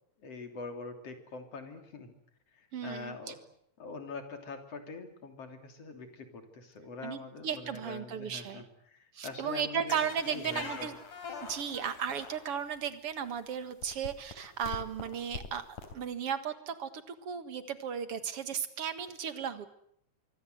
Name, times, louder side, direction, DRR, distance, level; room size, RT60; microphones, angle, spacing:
voice 1, 0.2-2.1 2.5-3.4 3.8-10.0 10.3-10.9, left 4 dB, 50° left, 5 dB, 4.1 m, -44 dB
voice 2, 2.7-3.3 7.0-8.6 9.1-11.0 11.4-15.6 15.9-19.7, right 7 dB, 50° right, 10 dB, 2.4 m, -35 dB
sound 1, 9.9-12.8 13.5-13.6 13.8-15.9, left 5 dB, 80° left, 4.9 m, -43 dB
25.0 x 24.5 x 8.0 m, 0.71 s
omnidirectional pair, 3.6 m